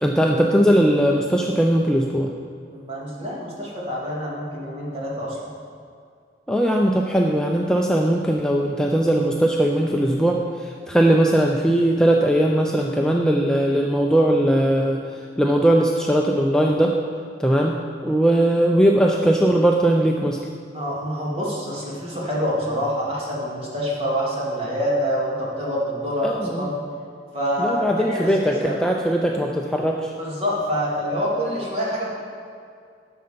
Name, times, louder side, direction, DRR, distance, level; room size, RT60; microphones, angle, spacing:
voice 1, 0.0-2.3 6.5-17.0 17.4-20.4 26.2-26.7 27.6-30.1, right 1 dB, 5° left, 0 dB, 0.4 m, -19 dB
voice 2, 2.7-5.5 20.7-26.8 27.3-28.7 30.2-32.1, equal, 35° right, -5 dB, 2.4 m, -26 dB
11.5 x 6.8 x 5.1 m, 2.2 s
head